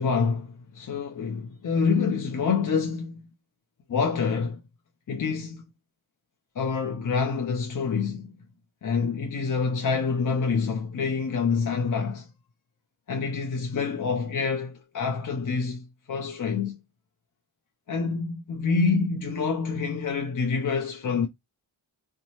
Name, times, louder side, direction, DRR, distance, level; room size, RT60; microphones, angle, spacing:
voice 1, 0.0-3.2 3.9-4.6 5.1-5.6 6.6-8.3 8.8-12.3 13.1-16.8 17.9-21.3, left 5 dB, 40° left, 0.6 m, -27 dB
2.6 x 2.2 x 3.0 m
cardioid pair, 45°, 48 cm